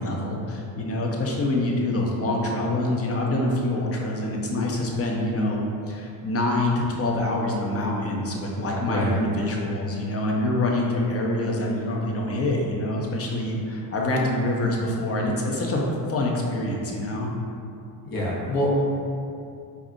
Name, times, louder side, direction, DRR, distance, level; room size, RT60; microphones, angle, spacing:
voice 1, 0.0-5.6 5.9-15.8 16.1-17.3, left 1 dB, 30° left, -1 dB, 0.7 m, -25 dB
voice 2, 8.9-9.2 18.0-18.7, left 1 dB, 45° left, -4 dB, 1.2 m, -26 dB
4.7 x 2.6 x 2.6 m, 2.6 s
supercardioid pair, 75°, 48 cm